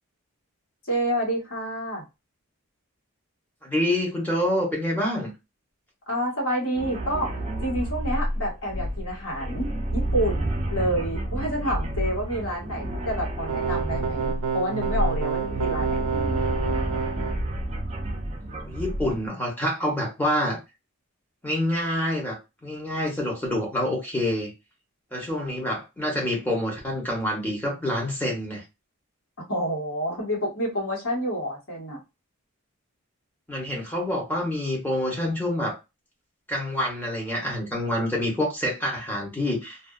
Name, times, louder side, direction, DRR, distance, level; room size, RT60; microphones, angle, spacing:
voice 1, 0.9-2.0 6.1-16.4 29.5-32.0, equal, 65° left, 1.6 m, -29 dB
voice 2, 3.6-5.3 18.5-20.6 21.4-24.5 25.1-28.6 33.5-35.8 36.5-39.8, left 1 dB, 10° left, 1.0 m, -27 dB
sound 1, 6.8-19.3, right 1 dB, 30° right, 0.5 m, -30 dB
sound 2, 13.5-17.4, right 6 dB, 80° right, 0.4 m, -29 dB
2.6 x 2.5 x 2.4 m
head